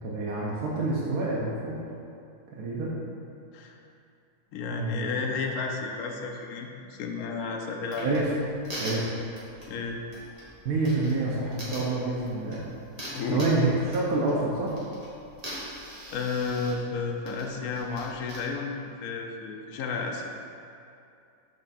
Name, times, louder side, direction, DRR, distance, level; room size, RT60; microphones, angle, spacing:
voice 1, 0.0-1.8 2.5-3.0 4.7-5.2 8.0-8.3 8.8-9.1 10.6-12.6 13.3-14.7, right 2 dB, 85° right, -5 dB, 1.3 m, -27 dB
voice 2, 4.5-8.1 9.7-10.0 13.1-13.5 16.1-20.2, left 4 dB, 75° left, 1 dB, 1.1 m, -32 dB
sound 1, 7.9-18.4, equal, 25° right, 1.3 m, -43 dB
7.1 x 3.2 x 4.1 m, 2.6 s
omnidirectional pair, 1.6 m